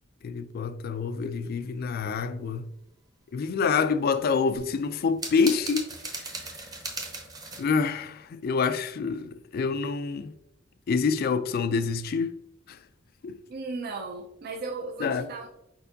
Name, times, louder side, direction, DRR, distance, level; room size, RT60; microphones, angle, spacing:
voice 1, 0.2-2.7 3.3-6.2 7.6-10.3 10.9-12.4 12.7-12.8 13.2-13.4 15.0-15.3, left 5 dB, 50° left, 0.3 m, -27 dB
sound 1, 4.5-7.6, right 3 dB, 20° right, 0.7 m, -37 dB
voice 2, 13.5-15.5, right 3 dB, 50° right, 0.4 m, -36 dB
4.4 x 4.4 x 2.7 m
head